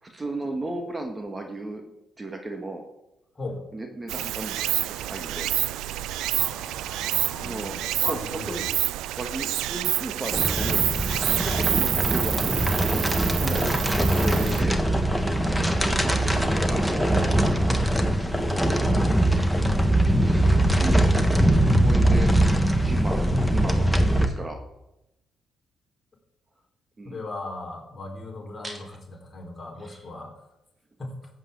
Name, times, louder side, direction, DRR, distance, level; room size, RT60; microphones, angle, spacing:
voice 1, 0.0-2.8 3.7-5.5 7.4-8.7 9.2-10.8 11.2-12.6 13.4-13.7 14.1-14.8 15.8-17.4 19.6-22.3 22.7-24.6 27.0-27.3 28.6-29.0 29.8-30.1, right 2 dB, 25° right, 4 dB, 1.8 m, -35 dB
Stream, 4.1-14.6, right 14 dB, 90° right, 0.4 m, -28 dB
voice 2, 6.3-8.6 13.4-13.8 15.3-15.5 27.0-28.8 29.2-30.3 31.0-31.2, left 2 dB, 30° left, 0 dB, 4.5 m, -37 dB
sound 1, 10.3-24.3, right 1 dB, ahead, 1.5 m, -22 dB
14.0 x 8.0 x 8.3 m, 0.91 s
cardioid pair, 90°, 0 cm